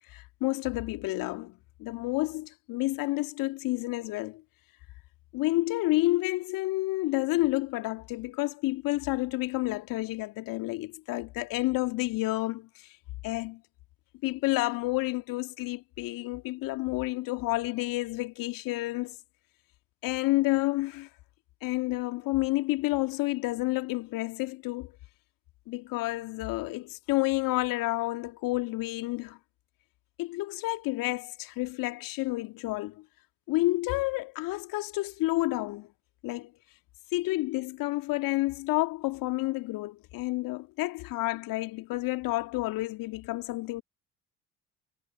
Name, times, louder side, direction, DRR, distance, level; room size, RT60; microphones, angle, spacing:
voice 1, 0.1-4.4 5.3-12.9 13.2-13.6 14.2-19.2 20.0-21.1 21.6-24.9 25.7-29.4 30.2-33.0 33.5-35.9 36.2-36.5 37.1-43.8, left 20 dB, 60° left, 2.2 m, -30 dB
figure-of-eight pair, 50°, 38 cm